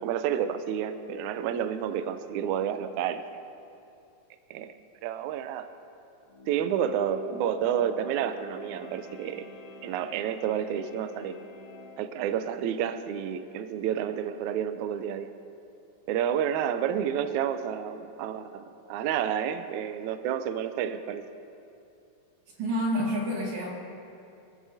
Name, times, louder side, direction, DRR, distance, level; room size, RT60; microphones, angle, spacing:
voice 1, 0.0-3.2 4.5-4.7 5.0-5.7 6.5-9.5 9.8-11.4 12.0-15.3 16.1-21.2, right 9 dB, 80° right, 9 dB, 1.7 m, -30 dB
sound 1, 6.3-12.0, left 2 dB, 85° left, 3.6 m, -44 dB
voice 2, 22.6-23.7, equal, 55° right, -3 dB, 3.4 m, -28 dB
23.5 x 14.5 x 2.8 m, 2.6 s
omnidirectional pair, 4.1 m